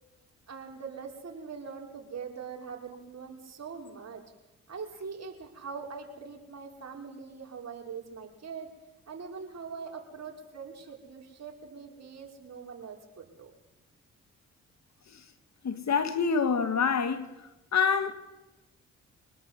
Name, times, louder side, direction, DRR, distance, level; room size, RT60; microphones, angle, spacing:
voice 1, 0.5-4.2 4.7-8.7 9.1-13.5, right 5 dB, 50° right, 5.7 m, -42 dB
voice 2, 15.6-17.3 17.7-18.1, left 6 dB, 55° left, 2.4 m, -26 dB
25.0 x 19.5 x 8.4 m
hypercardioid pair, 50°, 34 cm